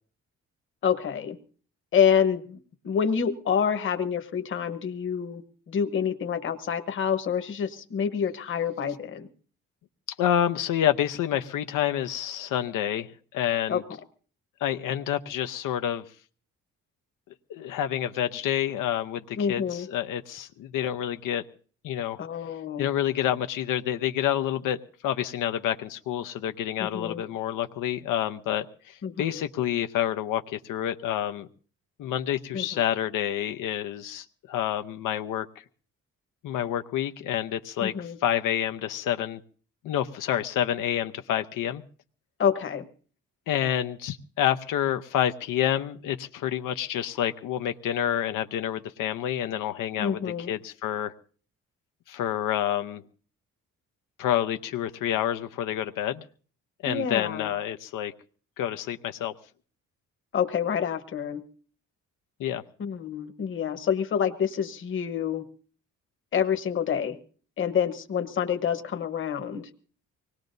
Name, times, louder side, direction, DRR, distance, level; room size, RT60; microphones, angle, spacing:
voice 1, 0.8-1.4 1.9-2.6 2.8-9.3 13.7-13.8 19.4-19.9 22.2-22.9 26.8-27.2 29.0-29.4 32.5-32.8 37.8-38.2 42.4-42.9 50.0-50.5 56.8-57.5 60.3-61.4 62.8-65.5 66.3-67.2 67.6-69.7, left 7 dB, 40° left, 8 dB, 1.1 m, -27 dB
voice 2, 10.2-13.8 14.6-16.1 17.5-21.4 21.8-22.2 22.8-24.8 25.0-31.5 32.0-35.5 36.4-39.4 39.8-41.8 43.5-50.2 50.5-51.1 52.1-53.0 54.2-56.3 56.8-58.1 58.6-59.3 62.4-62.6, left 11 dB, 85° left, 8 dB, 0.8 m, -28 dB
24.5 x 19.5 x 2.7 m, 0.43 s
cardioid pair, 180°, 31 cm